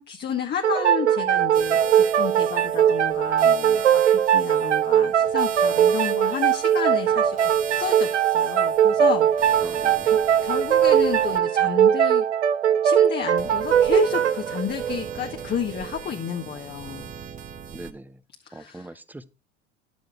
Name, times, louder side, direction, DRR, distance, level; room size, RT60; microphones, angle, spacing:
voice 1, 0.0-12.2 12.8-17.1 18.5-18.9, left 8 dB, 30° left, 1.2 m, -31 dB
sound 1, 0.6-16.0, right 9 dB, 90° right, 0.6 m, -20 dB
sound 2, 1.5-11.4 13.4-17.9, right 7 dB, 25° right, 1.0 m, -40 dB
voice 2, 9.6-10.1 17.7-18.1 18.5-19.3, right 2 dB, 5° right, 0.7 m, -41 dB
10.5 x 7.3 x 4.7 m
hypercardioid pair, 80°, 33 cm